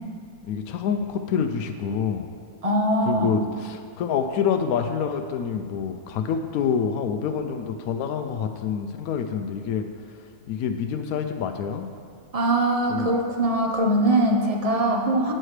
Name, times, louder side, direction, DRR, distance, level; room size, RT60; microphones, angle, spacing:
voice 1, 0.5-2.3 3.0-9.9 10.5-11.9 12.9-13.1, left 7 dB, 75° left, 6 dB, 1.0 m, -27 dB
voice 2, 2.6-3.3 12.3-15.3, right 1 dB, 30° right, 1 dB, 0.8 m, -22 dB
10.5 x 8.8 x 3.2 m, 2.1 s
omnidirectional pair, 1.6 m